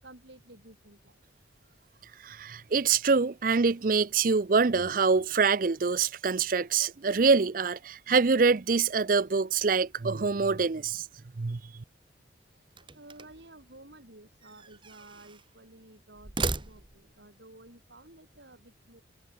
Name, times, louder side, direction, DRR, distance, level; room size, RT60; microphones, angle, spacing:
voice 1, 0.0-1.2 2.2-2.3 12.5-19.0, right 2 dB, 65° right, 5.8 m, -53 dB
voice 2, 2.2-11.0 11.4-11.6, right 4 dB, 45° right, 0.5 m, -25 dB
sound 1, 12.8-13.5 14.4-15.5 16.1-17.2, right 4 dB, 25° right, 1.0 m, -36 dB
head